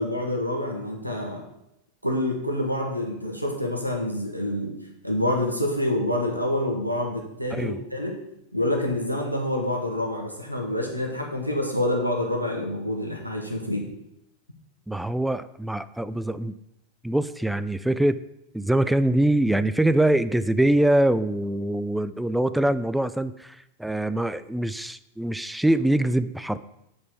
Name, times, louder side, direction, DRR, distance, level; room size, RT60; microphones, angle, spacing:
voice 1, 0.0-1.4 2.0-4.8 5.0-8.2 8.5-13.8, left 1 dB, 90° right, 2 dB, 1.3 m, -27 dB
voice 2, 14.9-16.5 17.0-18.2 18.5-26.6, right 1 dB, 5° right, 14 dB, 0.3 m, -23 dB
8.6 x 4.1 x 4.6 m, 0.81 s
figure-of-eight pair, 90°, 0 cm